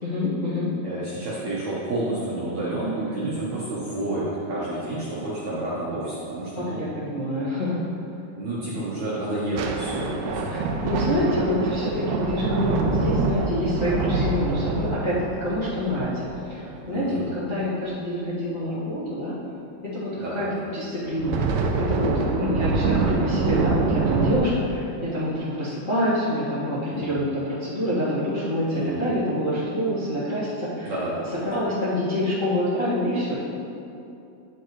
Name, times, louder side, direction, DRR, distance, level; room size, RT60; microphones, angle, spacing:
voice 1, 0.0-0.7 6.7-7.8 10.5-10.6 10.8-15.1 15.4-19.3 19.9-20.5 20.7-21.4 21.9-30.9 31.4-33.3, left 1 dB, 50° left, -13 dB, 0.9 m, -26 dB
voice 2, 0.8-6.8 8.3-10.8 16.9-17.3 20.2-20.6 26.9-27.2 28.7-29.1 30.8-31.4, right 2 dB, 65° right, -8 dB, 1.8 m, -30 dB
sound 1, 9.6-17.2 21.1-24.4, right 4 dB, 85° right, 2.0 m, -25 dB
10.0 x 7.5 x 3.1 m, 2.7 s
omnidirectional pair, 4.7 m